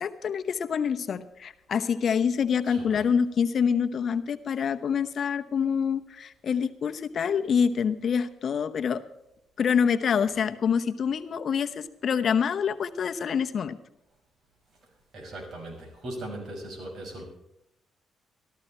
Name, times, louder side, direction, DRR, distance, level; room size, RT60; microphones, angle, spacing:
voice 1, 0.0-9.0 9.6-13.8, left 7 dB, 55° left, 9 dB, 0.9 m, -26 dB
voice 2, 2.7-3.1 15.1-17.2, right 1 dB, 55° right, 2 dB, 6.0 m, -39 dB
14.0 x 13.5 x 4.4 m, 0.84 s
cardioid pair, 90°, 0 cm